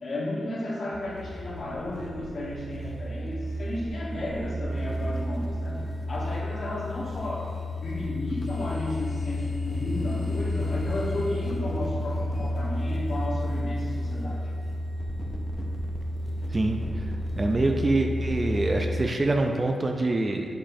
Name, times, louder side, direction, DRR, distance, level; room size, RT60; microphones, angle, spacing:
voice 1, 0.0-5.8 6.1-7.5 7.8-14.5, left 1 dB, 45° left, -5 dB, 1.3 m, -33 dB
sound 1, 0.9-19.1, left 1 dB, 25° left, 0.6 m, -31 dB
voice 2, 16.5-17.0 17.4-20.5, right 2 dB, 25° right, 3 dB, 0.3 m, -25 dB
6.3 x 5.9 x 2.7 m, 2.2 s
wide cardioid pair, 155°, 0 cm